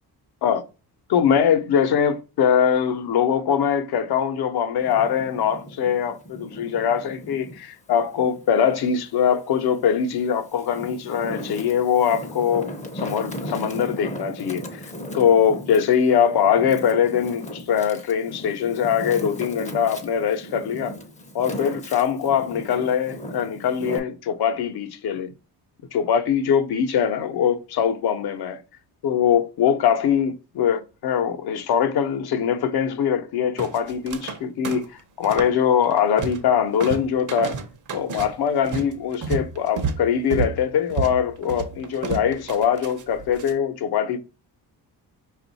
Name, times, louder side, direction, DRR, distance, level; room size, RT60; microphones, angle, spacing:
voice 1, 1.1-14.8 15.1-20.9 21.3-25.3 25.9-28.6 29.0-34.9 35.2-37.6 37.9-44.2, left 8 dB, 65° left, 0.8 m, -22 dB
Wind, 4.8-7.6 8.1-9.4 10.0-24.0, equal, 20° left, 0.6 m, -36 dB
sound 1, 33.6-34.4 34.6-35.6 35.8-36.5 36.8-43.5, right 5 dB, 50° right, 0.8 m, -31 dB
5.3 x 2.5 x 4.0 m
cardioid pair, 160°, 41 cm